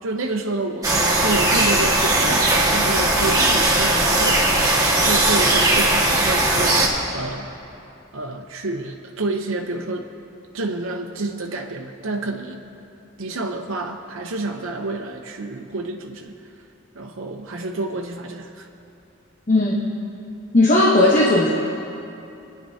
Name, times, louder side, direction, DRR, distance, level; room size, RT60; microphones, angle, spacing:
voice 1, 0.0-4.5 4.9-7.5 8.1-10.1 10.5-12.6 13.2-16.3 16.9-18.7, right 2 dB, 75° right, 2 dB, 0.8 m, -29 dB
sound 1, 0.8-6.9, right 2 dB, 20° right, 1.6 m, -18 dB
voice 2, 19.5-19.9 20.5-21.5, left 2 dB, 40° left, -2 dB, 1.0 m, -16 dB
29.5 x 10.0 x 2.8 m, 2.8 s
head